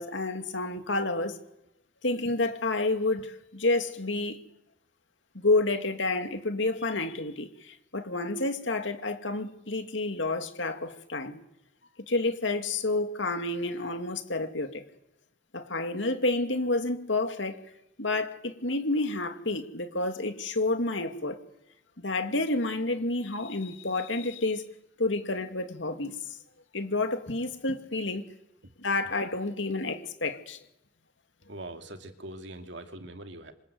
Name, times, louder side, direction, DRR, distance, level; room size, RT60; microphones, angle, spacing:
voice 1, 0.0-1.4 2.0-4.4 5.3-11.4 12.1-14.8 15.5-17.6 18.0-21.4 22.0-24.6 25.0-26.4 26.7-28.2 28.8-30.6, left 2 dB, 75° left, 2.5 m, -29 dB
voice 2, 31.5-33.5, right 1 dB, 65° right, 2.6 m, -42 dB
27.0 x 26.0 x 8.0 m
head